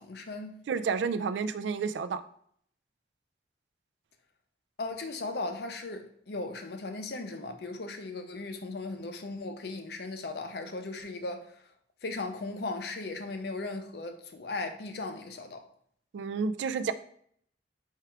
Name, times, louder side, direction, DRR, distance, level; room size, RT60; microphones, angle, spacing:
voice 1, 0.0-0.6 4.8-11.6 12.0-15.7, left 3 dB, 60° left, 0.6 m, -37 dB
voice 2, 0.7-2.2 16.1-16.9, right 5 dB, 80° right, 0.3 m, -30 dB
4.5 x 2.4 x 4.5 m
head